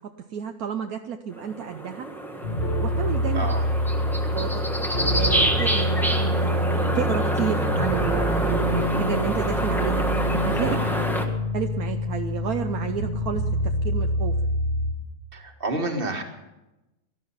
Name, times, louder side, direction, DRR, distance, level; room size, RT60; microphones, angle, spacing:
voice 1, 0.3-2.1 2.8-3.4 4.3-4.6 5.1-10.0 10.4-10.8 11.5-14.4, right 8 dB, 70° right, 6 dB, 1.2 m, -30 dB
sound 1, 1.3-11.3, right 1 dB, ahead, 1.4 m, -27 dB
sound 2, 2.4-14.9, equal, 50° left, 3.7 m, -26 dB
voice 2, 3.3-3.7 10.7-11.1 15.3-16.2, right 2 dB, 35° right, 4 dB, 1.9 m, -30 dB
18.0 x 12.5 x 5.7 m, 1.0 s
omnidirectional pair, 1.7 m